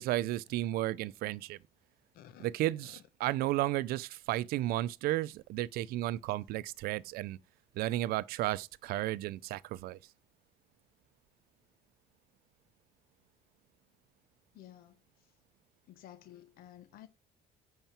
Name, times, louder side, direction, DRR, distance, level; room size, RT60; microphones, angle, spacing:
voice 1, 0.0-1.6 2.4-7.4 7.7-10.0, right 15 dB, 75° right, 0.5 m, -33 dB
voice 2, 2.1-2.5 2.9-3.0 14.5-15.3 15.9-17.1, left 12 dB, 70° left, 0.9 m, -53 dB
9.0 x 5.7 x 4.4 m
cardioid pair, 135°, 16 cm